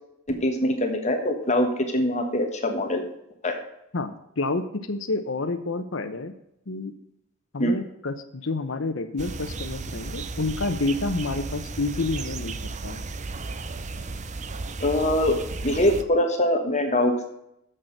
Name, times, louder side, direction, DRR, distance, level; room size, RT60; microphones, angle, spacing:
voice 1, 0.3-3.0 3.4-3.5 7.6-7.7 14.8-15.3 15.6-17.3, left 1 dB, 35° left, 4 dB, 1.4 m, -23 dB
voice 2, 3.9-6.3 6.7-6.9 7.5-12.5 12.8-13.0, left 3 dB, 70° left, 8 dB, 0.9 m, -29 dB
sound 1, 9.2-16.0, right 3 dB, 35° right, 0.6 m, -34 dB
7.6 x 6.6 x 6.5 m, 0.80 s
head